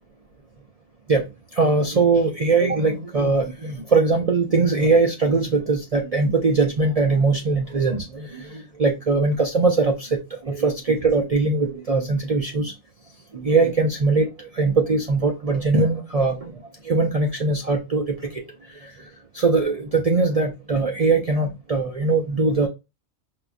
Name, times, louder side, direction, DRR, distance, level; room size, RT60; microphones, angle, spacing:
voice 1, 1.5-10.2 10.4-12.7 13.3-16.5 16.8-18.4 18.8-18.9 19.3-22.7, right 3 dB, 55° right, 2 dB, 0.4 m, -21 dB
4.5 x 2.4 x 2.5 m, 0.25 s
omnidirectional pair, 1.4 m